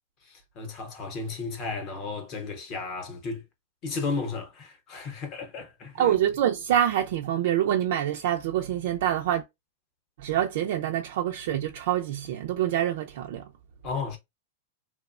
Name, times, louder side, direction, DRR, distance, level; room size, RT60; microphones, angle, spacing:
voice 1, 0.3-3.4 3.8-6.2 13.8-14.2, left 4 dB, 30° left, 0.7 m, -34 dB
voice 2, 6.0-9.4 10.2-13.4, right 11 dB, 55° right, 0.4 m, -26 dB
3.0 x 2.1 x 2.4 m
supercardioid pair, 170°, 0 cm